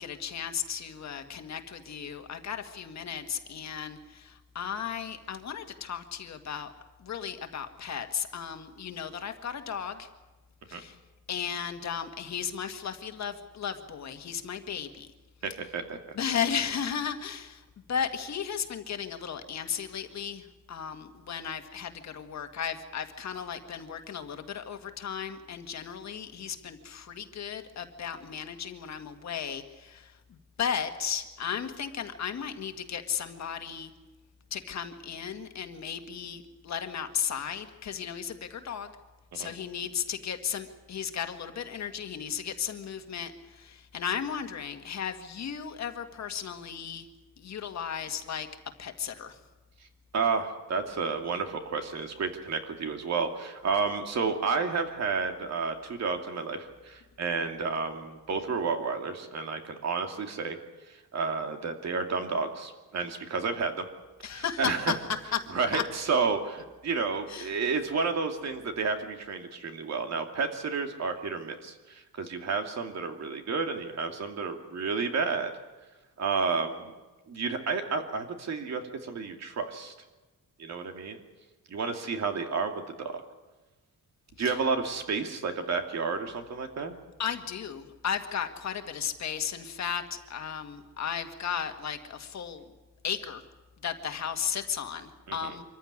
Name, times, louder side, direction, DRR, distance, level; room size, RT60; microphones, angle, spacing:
voice 1, 0.0-6.7 7.0-10.1 10.7-11.0 11.3-15.1 16.1-33.9 34.5-38.9 39.3-47.1 47.4-48.5 48.8-49.4 64.2-65.0 65.3-65.8 67.3-67.5 84.4-84.6 87.2-92.6 93.0-93.4 93.8-95.6, left 8 dB, 55° left, 7 dB, 1.8 m, -35 dB
voice 2, 15.4-16.2 39.4-39.5 50.1-60.6 60.9-63.9 64.3-64.9 65.5-75.5 76.2-76.9 77.3-79.9 80.6-81.2 81.7-82.7 83.0-83.2 84.4-86.9 95.3-95.5, right 4 dB, 50° right, 5 dB, 2.6 m, -31 dB
25.0 x 15.0 x 9.8 m, 1.2 s
wide cardioid pair, 155°, 33 cm